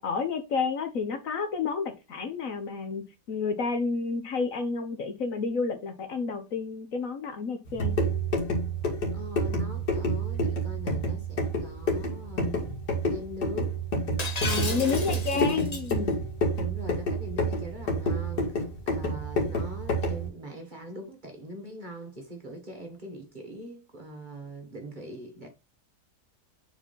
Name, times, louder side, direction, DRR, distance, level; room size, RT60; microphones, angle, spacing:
voice 1, 0.0-8.0 14.4-16.2, left 5 dB, 60° left, 1.3 m, -30 dB
sound 1, 7.7-20.3, right 1 dB, 85° left, 2.4 m, -29 dB
voice 2, 9.1-12.7 13.0-13.8 14.6-15.8 16.6-25.5, equal, 30° right, 1.5 m, -42 dB
Shatter, 14.2-15.9, left 3 dB, 30° left, 1.0 m, -34 dB
4.8 x 4.4 x 5.3 m
omnidirectional pair, 1.7 m